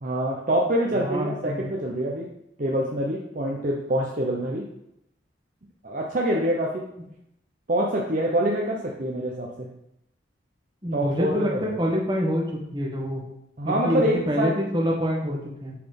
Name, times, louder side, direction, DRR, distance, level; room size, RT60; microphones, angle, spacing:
voice 1, 0.0-2.3 2.6-4.7 5.8-6.9 7.7-9.7 10.9-11.6 13.6-14.6, right 1 dB, 45° right, -2 dB, 0.9 m, -25 dB
voice 2, 1.0-1.7 10.8-12.4 12.7-13.2 13.6-15.7, equal, 25° right, -2 dB, 1.6 m, -26 dB
8.6 x 4.2 x 5.3 m, 0.79 s
head